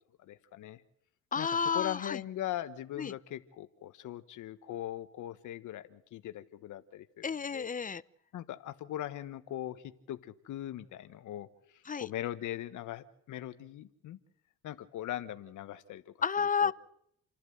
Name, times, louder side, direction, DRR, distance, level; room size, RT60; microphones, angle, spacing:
voice 1, 0.3-0.8 1.4-1.5 1.7-7.7 8.3-11.5 11.9-14.2 14.6-16.1 16.6-16.7, left 12 dB, 80° left, 1.3 m, -40 dB
voice 2, 1.3-2.2 3.0-3.1 7.2-8.0 11.9-12.1 16.2-16.7, left 6 dB, 25° left, 0.7 m, -31 dB
29.0 x 12.0 x 8.0 m
cardioid pair, 90°, 30 cm